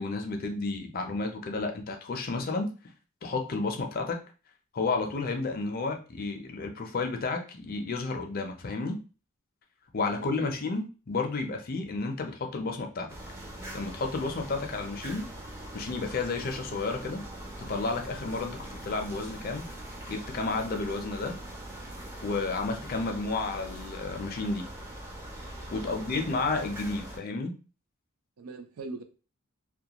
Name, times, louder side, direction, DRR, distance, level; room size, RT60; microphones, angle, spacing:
voice 1, 0.0-2.7 3.2-4.2 4.7-9.0 9.9-13.1 13.7-15.3 15.7-17.2 17.6-19.7 20.1-21.4 22.2-24.7 25.7-27.5, left 3 dB, 45° left, 0.5 m, -31 dB
voice 2, 10.1-10.5 25.7-26.3 28.4-29.0, right 3 dB, 85° right, 0.4 m, -41 dB
sound 1, 13.1-27.2, right 1 dB, 10° right, 0.5 m, -42 dB
2.3 x 2.2 x 2.8 m
head